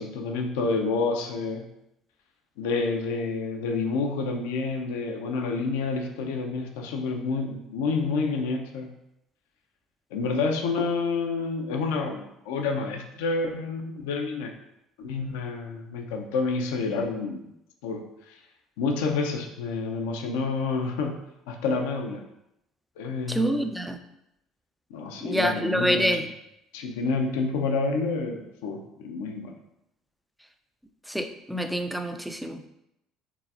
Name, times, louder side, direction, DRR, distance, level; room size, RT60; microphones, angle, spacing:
voice 1, 0.0-1.6 2.6-8.9 10.1-14.5 15.0-17.4 17.8-18.4 18.8-21.2 21.5-22.2 23.0-23.6 24.9-26.1 26.7-29.5, left 4 dB, 70° left, 3 dB, 0.5 m, -29 dB
voice 2, 23.3-24.0 25.2-26.2 31.1-32.7, equal, ahead, 6 dB, 0.4 m, -26 dB
4.8 x 3.2 x 2.5 m, 0.84 s
figure-of-eight pair, 60°, 0 cm